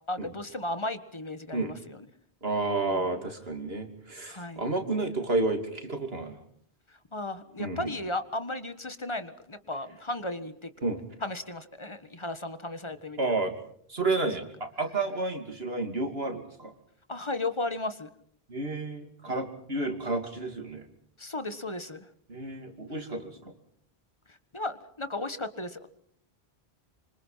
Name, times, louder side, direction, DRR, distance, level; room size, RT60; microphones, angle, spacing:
voice 1, 0.1-2.0 2.9-3.3 4.3-4.6 6.9-10.7 11.2-13.4 17.1-18.1 21.2-22.1 24.3-25.9, left 2 dB, 30° left, 11 dB, 1.5 m, -35 dB
voice 2, 2.4-6.4 7.6-7.9 10.8-11.0 13.2-13.5 13.9-16.7 18.5-20.9 22.3-23.5, right 2 dB, 70° right, 5 dB, 3.2 m, -31 dB
26.5 x 26.0 x 5.7 m, 0.64 s
omnidirectional pair, 1.0 m